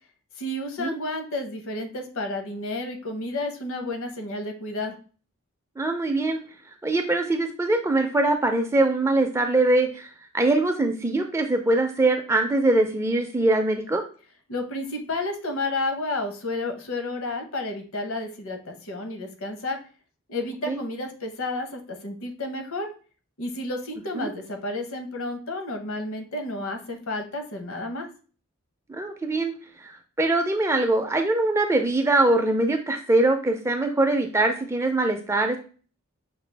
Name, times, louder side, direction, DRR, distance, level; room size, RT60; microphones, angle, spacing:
voice 1, 0.4-4.9 14.5-19.8 20.3-22.9 23.4-28.1, left 2 dB, 70° left, 5 dB, 0.8 m, -31 dB
voice 2, 5.8-6.4 6.8-14.0 20.7-20.8 24.1-24.3 28.9-29.5 29.8-35.6, right 2 dB, 10° right, 4 dB, 0.4 m, -23 dB
5.9 x 2.3 x 3.3 m, 0.38 s
head